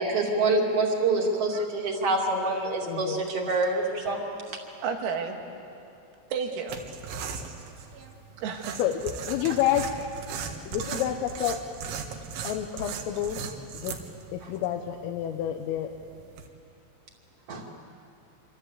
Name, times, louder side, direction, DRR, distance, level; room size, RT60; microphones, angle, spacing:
voice 1, 0.0-4.3 17.5-17.6, right 2 dB, 35° right, 0 dB, 2.8 m, -26 dB
voice 2, 1.5-2.0 4.8-5.4 6.3-6.8 7.9-8.1 8.4-8.8 9.4-9.6, right 6 dB, 85° right, 3 dB, 4.8 m, -33 dB
voice 3, 2.8-3.3 8.8-9.8 10.7-11.6 12.4-13.4 13.7-13.9 14.3-15.9, left 11 dB, 80° left, 4 dB, 3.6 m, -29 dB
sound 1, 6.7-16.5, right 6 dB, 70° right, 3.6 m, -38 dB
26.5 x 25.5 x 8.2 m, 2.6 s
omnidirectional pair, 5.9 m